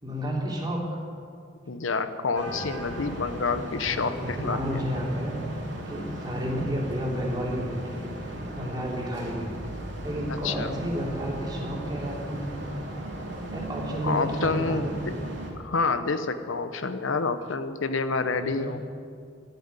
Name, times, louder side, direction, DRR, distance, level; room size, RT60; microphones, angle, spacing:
voice 1, 0.0-1.0 3.8-5.4 5.9-9.5 9.9-12.7 13.5-15.0 18.3-18.7, equal, 20° right, -3 dB, 3.0 m, -31 dB
voice 2, 1.7-4.8 10.4-10.7 14.0-15.1 15.6-18.8, left 4 dB, 75° left, 10 dB, 0.8 m, -28 dB
sound 1, 2.3-15.5, right 1 dB, 60° right, 3.0 m, -37 dB
13.5 x 9.2 x 9.6 m, 2.2 s
head